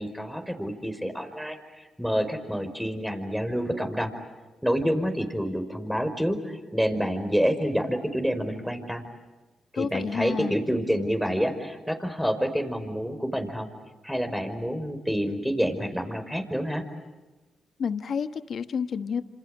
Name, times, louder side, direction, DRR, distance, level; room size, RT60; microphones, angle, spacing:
voice 1, 0.0-1.6 2.0-4.1 4.6-9.0 9.7-13.7 14.0-16.8, equal, ahead, 7 dB, 5.1 m, -28 dB
voice 2, 9.7-10.6 17.8-19.2, left 6 dB, 65° left, 11 dB, 1.2 m, -29 dB
27.5 x 27.0 x 7.9 m, 1.2 s
supercardioid pair, 45°, 0 cm